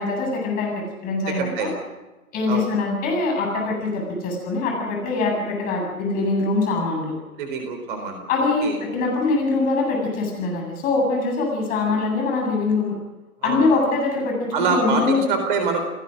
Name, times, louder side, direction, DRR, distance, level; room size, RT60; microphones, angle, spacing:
voice 1, 0.0-1.7 2.3-7.1 8.3-13.0 13.4-15.3, left 3 dB, 20° left, 0 dB, 7.8 m, -23 dB
voice 2, 1.4-1.7 2.5-2.7 7.4-8.2 8.6-8.8 13.4-13.8 14.5-15.8, right 4 dB, 35° right, 6 dB, 4.0 m, -25 dB
29.0 x 19.5 x 5.3 m, 1.1 s
figure-of-eight pair, 130°, 44 cm